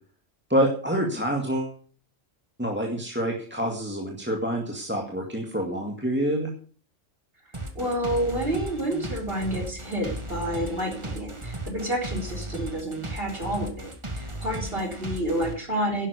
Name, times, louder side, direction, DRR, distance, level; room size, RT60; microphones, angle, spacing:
voice 1, 0.5-1.7 2.6-6.5, equal, 10° right, 1 dB, 2.0 m, -27 dB
sound 1, 7.5-15.5, right 2 dB, 25° right, 1.8 m, -35 dB
voice 2, 7.7-16.1, right 1 dB, 55° right, 1 dB, 4.0 m, -29 dB
11.5 x 10.0 x 6.6 m, 0.41 s
omnidirectional pair, 1.2 m